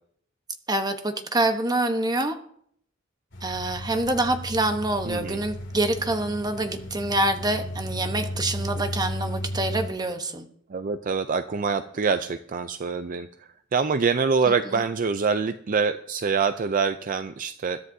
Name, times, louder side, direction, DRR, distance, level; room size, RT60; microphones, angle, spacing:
voice 1, 0.7-2.4 3.4-10.5 14.5-14.8, right 2 dB, 20° right, 7 dB, 1.0 m, -26 dB
sound 1, 3.3-9.9, equal, 65° left, 2.4 m, -34 dB
voice 2, 5.1-5.4 10.7-13.3 13.7-17.8, right 5 dB, 45° right, 11 dB, 0.4 m, -25 dB
21.0 x 12.0 x 2.7 m, 0.66 s
head